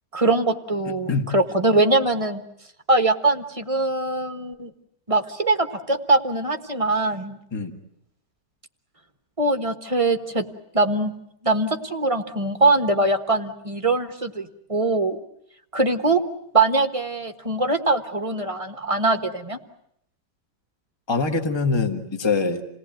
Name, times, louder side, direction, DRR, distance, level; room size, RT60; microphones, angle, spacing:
voice 1, 0.1-2.4 2.9-4.7 5.1-7.4 9.4-10.4 10.7-11.1 11.4-15.2 15.7-16.2 16.5-19.6, right 2 dB, 20° right, 7 dB, 1.1 m, -22 dB
voice 2, 21.1-22.6, left 4 dB, 15° left, 6 dB, 1.5 m, -23 dB
28.0 x 18.5 x 9.1 m, 0.75 s
omnidirectional pair, 1.9 m